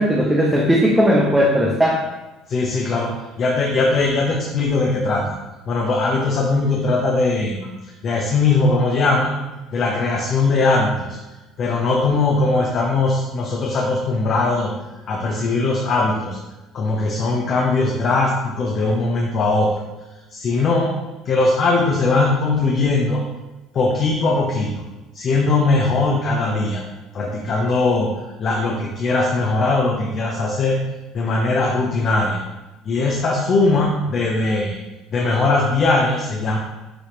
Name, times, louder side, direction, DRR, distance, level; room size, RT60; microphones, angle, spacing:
voice 1, 0.0-2.0, equal, 5° right, -2 dB, 0.5 m, -17 dB
voice 2, 2.5-3.1 3.4-5.4 5.7-9.3 9.7-11.2 11.6-14.7 15.1-16.4 16.7-19.7 20.3-20.9 21.3-23.2 23.7-24.7 25.1-26.8 27.1-28.1 28.4-30.8 31.1-32.4 32.8-34.8 35.1-36.6, left 3 dB, 35° left, -1 dB, 0.7 m, -20 dB
10.0 x 3.4 x 3.1 m, 1.1 s
cardioid pair, 175°, 0 cm